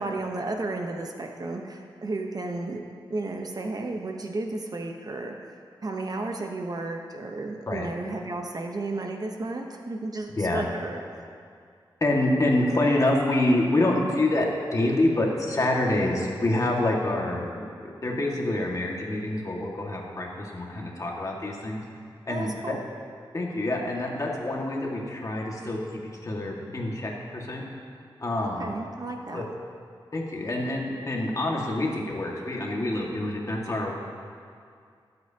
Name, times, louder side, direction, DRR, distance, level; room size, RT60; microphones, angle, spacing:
voice 1, 0.0-2.8 3.1-5.5 5.8-11.3 22.3-22.8 28.4-29.4, right 2 dB, 45° right, 2 dB, 1.0 m, -33 dB
voice 2, 12.0-21.8 22.3-22.7 23.3-25.8 26.2-27.6 28.2-28.7 29.3-29.4 30.1-34.0, left 1 dB, 40° left, -2 dB, 1.9 m, -26 dB
22.0 x 7.9 x 2.9 m, 2.3 s
wide cardioid pair, 80°, 9 cm